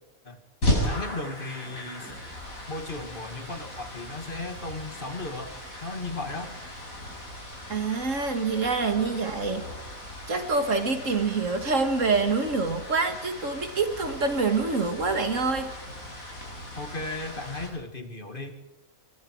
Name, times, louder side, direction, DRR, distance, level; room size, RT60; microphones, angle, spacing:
sound 1, 0.6-17.7, left 1 dB, 75° left, 7.2 m, -36 dB
voice 1, 0.8-2.1 2.7-5.5 5.8-6.5 16.8-18.5, left 2 dB, 40° left, 6 dB, 2.4 m, -35 dB
voice 2, 7.7-9.6 10.3-15.7, right 4 dB, 65° right, 7 dB, 2.4 m, -26 dB
24.0 x 24.0 x 4.8 m, 0.95 s
omnidirectional pair, 1.5 m